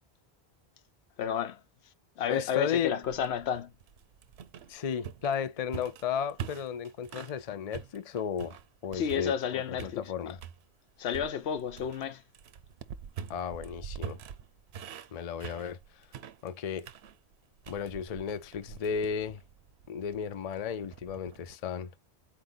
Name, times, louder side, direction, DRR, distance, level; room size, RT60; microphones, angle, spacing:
voice 1, 1.2-1.6 2.2-3.7 8.9-10.3 11.0-12.2, left 8 dB, 80° left, 0.9 m, -31 dB
voice 2, 2.3-2.9 4.7-8.6 8.8-10.4 13.3-14.2 15.1-16.1 16.4-16.9 17.7-19.4 19.9-21.9, left 7 dB, 45° left, 0.5 m, -34 dB
sound 1, 3.0-7.4 7.7-9.5 9.8-10.6 11.1-21.6, right 8 dB, 80° right, 0.9 m, -45 dB
4.5 x 2.9 x 3.9 m
omnidirectional pair, 1.1 m